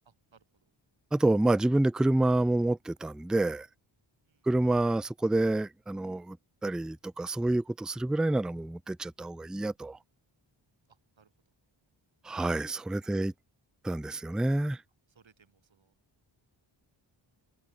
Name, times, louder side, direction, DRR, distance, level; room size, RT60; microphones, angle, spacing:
voice 1, 0.1-0.4 4.2-4.5 10.9-11.3 13.1-13.2 15.1-15.9, right 6 dB, 70° right, 7.2 m, -64 dB
voice 2, 1.1-3.7 4.5-6.4 6.6-10.0 12.2-13.3 13.8-14.8, right 2 dB, ahead, 0.4 m, -28 dB
wide cardioid pair, 115°, 47 cm